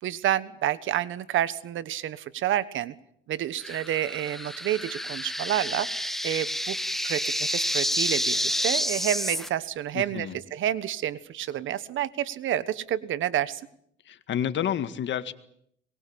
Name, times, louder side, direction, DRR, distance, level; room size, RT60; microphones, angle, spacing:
voice 1, 0.0-2.9 3.3-6.8 7.0-13.6, right 11 dB, 75° right, 16 dB, 1.4 m, -29 dB
sound 1, 3.6-9.5, equal, ahead, 1.2 m, -29 dB
voice 2, 9.9-10.4 14.1-15.3, left 9 dB, 70° left, 12 dB, 1.9 m, -29 dB
24.0 x 21.5 x 8.8 m, 0.70 s
cardioid pair, 90°, 20 cm